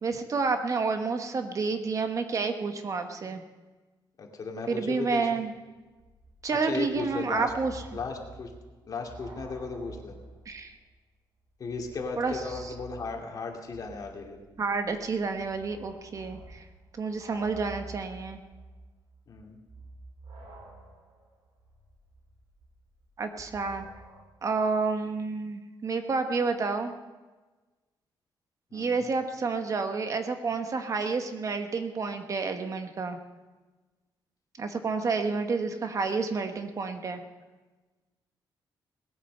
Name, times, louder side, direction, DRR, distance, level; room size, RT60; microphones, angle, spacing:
voice 1, 0.0-3.4 4.7-5.5 6.4-7.8 10.4-10.8 12.2-12.7 14.6-16.6 17.0-18.4 23.2-23.8 24.4-26.9 28.7-33.2 34.6-37.2, right 4 dB, 40° right, 7 dB, 1.2 m, -30 dB
voice 2, 4.2-5.3 6.6-7.5 7.9-8.5 8.8-10.2 11.6-14.4 19.3-19.6 28.7-29.1, left 4 dB, 50° left, 2 dB, 2.6 m, -36 dB
sound 1, 5.5-5.6 5.8-10.6 10.9-11.0 11.5-24.2, right 2 dB, 70° right, 4.4 m, -49 dB
19.0 x 8.8 x 6.7 m, 1.2 s
cardioid pair, 120°, 8 cm